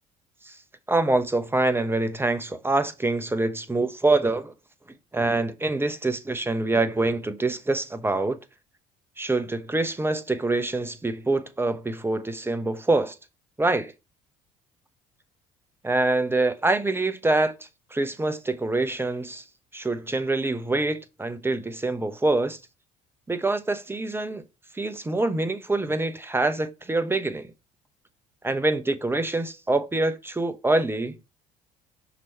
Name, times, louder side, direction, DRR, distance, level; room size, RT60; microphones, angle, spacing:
voice 1, 0.9-4.5 5.1-8.4 9.2-13.1 13.6-13.9 15.8-17.5 17.9-19.4 19.7-22.6 23.3-24.4 24.7-27.5 28.4-31.2, right 2 dB, 15° right, 0.9 m, -25 dB
5.9 x 3.1 x 5.6 m
supercardioid pair, 75°, 17 cm